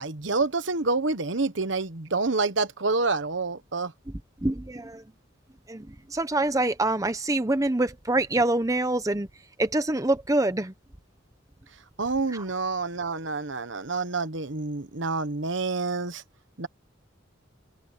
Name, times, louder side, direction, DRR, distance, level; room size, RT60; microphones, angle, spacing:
voice 1, 0.0-3.9 12.0-16.2 16.6-16.7, right 3 dB, 65° right, 1.2 m, -28 dB
voice 2, 4.4-5.0 5.7-9.3 9.6-10.7 12.3-12.4, right 2 dB, 15° right, 0.8 m, -25 dB
head